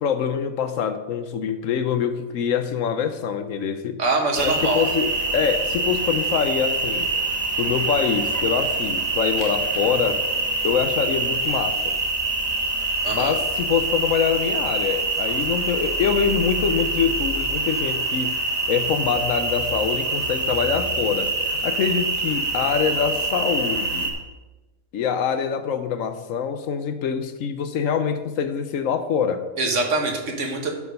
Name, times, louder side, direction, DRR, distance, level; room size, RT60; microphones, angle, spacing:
voice 1, 0.0-4.0 4.4-7.1 7.6-10.2 10.6-11.8 13.1-18.4 18.7-24.1 24.9-29.4, left 7 dB, 70° left, 10 dB, 1.1 m, -24 dB
voice 2, 4.0-4.8 13.0-13.3 29.6-30.7, right 3 dB, 60° right, 2 dB, 1.7 m, -24 dB
sound 1, 4.3-24.1, right 3 dB, 30° right, 1.3 m, -25 dB
12.0 x 4.9 x 5.3 m, 1.2 s
omnidirectional pair, 1.4 m